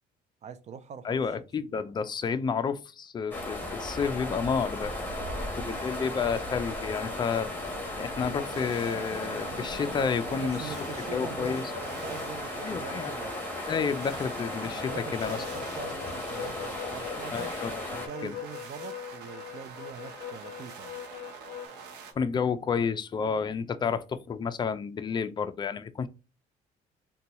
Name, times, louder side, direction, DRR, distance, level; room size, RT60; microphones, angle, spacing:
voice 1, 0.4-1.4 5.0-6.4 10.3-13.4 13.9-14.0 14.7-17.5 17.9-21.0, right 7 dB, 45° right, 0.4 m, -43 dB
voice 2, 1.0-4.9 5.6-7.5 8.0-11.6 12.6-13.1 13.7-15.4 17.3-17.8 18.2-18.3 22.2-26.1, left 6 dB, 25° left, 0.4 m, -30 dB
sound 1, 3.3-18.1, left 1 dB, 10° left, 1.2 m, -36 dB
sound 2, 8.2-22.1, right 5 dB, 85° right, 0.8 m, -46 dB
sound 3, 14.8-21.7, left 10 dB, 80° left, 0.5 m, -42 dB
3.8 x 2.3 x 2.9 m
cardioid pair, 110°, 17 cm